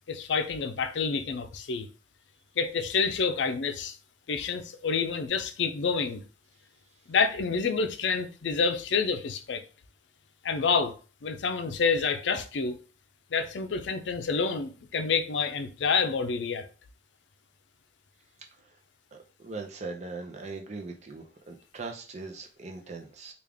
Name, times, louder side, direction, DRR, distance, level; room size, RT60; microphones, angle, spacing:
voice 1, 0.1-1.9 2.6-4.0 4.3-6.2 7.1-9.6 10.4-12.8 13.3-16.6, left 5 dB, 80° left, 0.5 m, -28 dB
voice 2, 19.1-23.3, right 3 dB, 40° right, 0.6 m, -40 dB
3.5 x 2.4 x 3.4 m
head